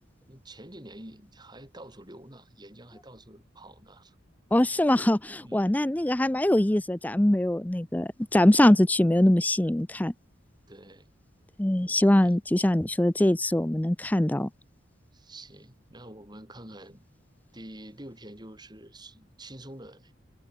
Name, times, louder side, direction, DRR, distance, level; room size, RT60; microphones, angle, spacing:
voice 1, 0.3-4.2 5.4-5.7 10.7-11.1 12.1-12.4 15.1-17.0 17.5-20.1, right 1 dB, 20° right, 7.3 m, -47 dB
voice 2, 4.5-10.1 11.6-14.5, left 1 dB, 10° left, 0.4 m, -22 dB
head